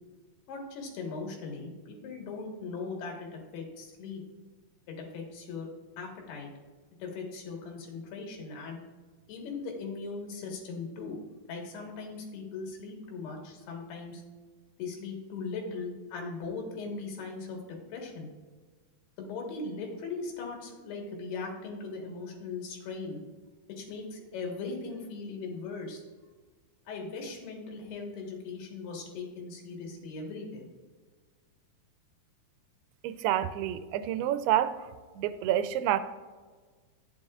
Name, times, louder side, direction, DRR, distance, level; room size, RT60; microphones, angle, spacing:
voice 1, 0.5-4.2 4.9-5.7 6.0-6.5 7.0-8.8 9.3-11.2 11.5-14.2 14.8-18.3 19.2-23.2 23.8-26.0 26.9-30.7, left 4 dB, 85° left, 1 dB, 3.5 m, -39 dB
voice 2, 33.0-34.9 35.2-36.0, right 11 dB, 90° right, 12 dB, 2.5 m, -28 dB
11.5 x 9.4 x 2.4 m, 1.4 s
omnidirectional pair, 4.5 m